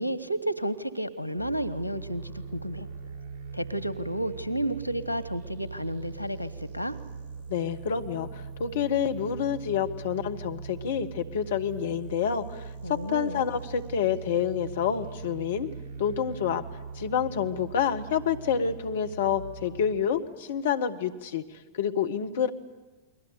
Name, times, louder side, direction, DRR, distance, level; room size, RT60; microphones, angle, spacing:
voice 1, 0.0-2.9 3.5-7.0 12.8-13.4, right 1 dB, 90° right, 16 dB, 1.0 m, -31 dB
sound 1, 1.4-19.9, right 5 dB, 45° right, 4.2 m, -41 dB
voice 2, 7.5-15.7 16.0-16.6 17.0-21.4 21.7-22.5, left 8 dB, 60° left, 8 dB, 1.4 m, -28 dB
29.5 x 21.5 x 6.8 m, 1.2 s
figure-of-eight pair, 90°, 0 cm